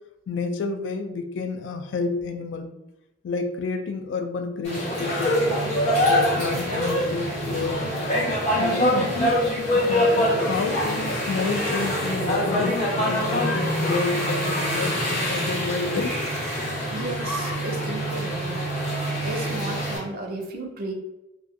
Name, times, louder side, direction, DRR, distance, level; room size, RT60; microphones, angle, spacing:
voice 1, 0.3-2.7 3.2-5.4 6.1-8.0 8.5-9.4 9.7-16.2, left 4 dB, 70° left, 7 dB, 0.3 m, -30 dB
sound 1, 4.6-20.0, equal, 40° left, 1.4 m, -24 dB
voice 2, 16.9-18.6 19.2-20.9, right 2 dB, 50° right, 2 dB, 0.5 m, -33 dB
2.5 x 2.4 x 2.5 m, 0.94 s
head